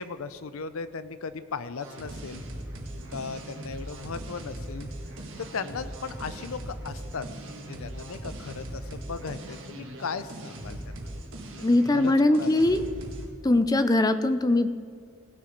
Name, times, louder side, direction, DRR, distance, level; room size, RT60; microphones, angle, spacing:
voice 1, 0.0-2.4 3.1-4.9 5.4-7.3 7.6-11.0 11.6-12.6, left 5 dB, 80° left, 13 dB, 0.6 m, -37 dB
sound 1, 1.8-13.3, right 1 dB, 65° right, 1.9 m, -39 dB
voice 2, 11.6-12.8 13.4-14.7, left 2 dB, 15° left, 11 dB, 0.5 m, -21 dB
17.5 x 6.7 x 5.2 m, 2.1 s
head